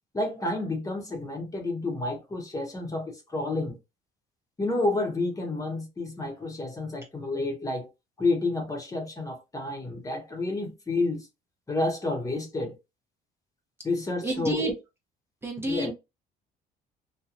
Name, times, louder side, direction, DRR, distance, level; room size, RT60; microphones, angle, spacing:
voice 1, 0.1-3.8 4.6-7.9 8.2-11.3 11.7-12.8 13.8-14.7 15.7-15.9, left 2 dB, 20° left, 0.9 m, -30 dB
voice 2, 14.2-14.7 15.4-15.9, right 2 dB, 15° right, 0.8 m, -29 dB
2.9 x 2.2 x 2.4 m
cardioid pair, 110°, 17 cm